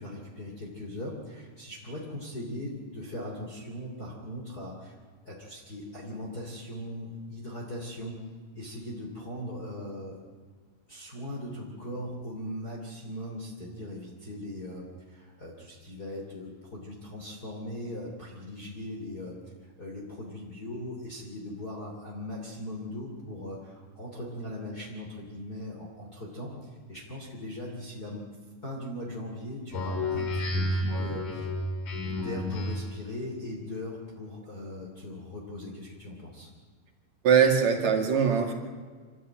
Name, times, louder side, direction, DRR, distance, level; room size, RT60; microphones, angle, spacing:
voice 1, 0.0-4.9 5.2-8.2 8.5-10.2 10.9-28.3 28.6-31.5 32.1-36.5, left 1 dB, 25° left, -2 dB, 3.3 m, -39 dB
Speech synthesizer, 29.7-33.1, left 1 dB, 55° left, 3.9 m, -31 dB
voice 2, 37.2-38.5, right 7 dB, 55° right, 3 dB, 3.3 m, -22 dB
26.0 x 14.0 x 9.1 m, 1.5 s
omnidirectional pair, 4.2 m